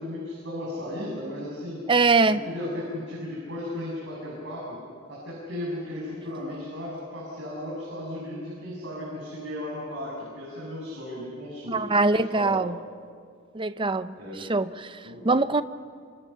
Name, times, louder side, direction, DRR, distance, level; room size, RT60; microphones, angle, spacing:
voice 1, 0.0-1.8 2.3-4.8 5.1-12.6 14.1-14.5 15.0-15.3, left 1 dB, 60° right, -5 dB, 7.1 m, -35 dB
voice 2, 1.9-2.4 11.7-12.8 13.5-15.6, right 3 dB, 25° right, 13 dB, 0.6 m, -23 dB
27.5 x 26.0 x 5.8 m, 2.1 s
head